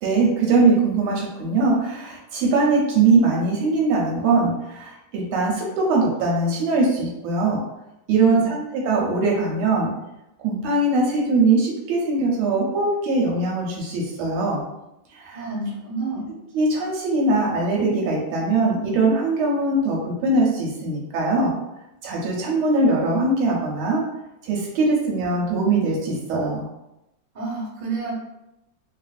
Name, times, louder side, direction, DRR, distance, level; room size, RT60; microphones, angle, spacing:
voice 1, 0.0-7.6 8.1-9.9 10.4-14.6 15.1-15.4 16.5-21.5 22.0-24.0 24.4-26.7, right 3 dB, 80° right, -2 dB, 1.5 m, -21 dB
voice 2, 8.1-8.5 15.3-16.3 27.3-28.2, right 3 dB, 30° right, -7 dB, 0.9 m, -28 dB
3.3 x 2.4 x 2.4 m, 0.90 s
omnidirectional pair, 2.3 m